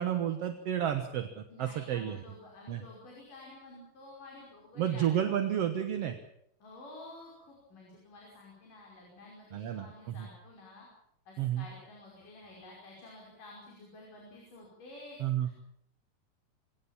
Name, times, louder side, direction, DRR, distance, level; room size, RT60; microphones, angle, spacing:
voice 1, 0.0-2.2 2.7-2.8 4.8-6.2 9.5-10.3 11.4-11.7 15.2-15.5, right 10 dB, 60° right, 8 dB, 1.9 m, -31 dB
voice 2, 1.5-5.1 6.6-10.9 11.3-15.5, left 2 dB, 75° left, -2 dB, 7.1 m, -51 dB
24.5 x 18.0 x 7.3 m, 0.72 s
omnidirectional pair, 3.8 m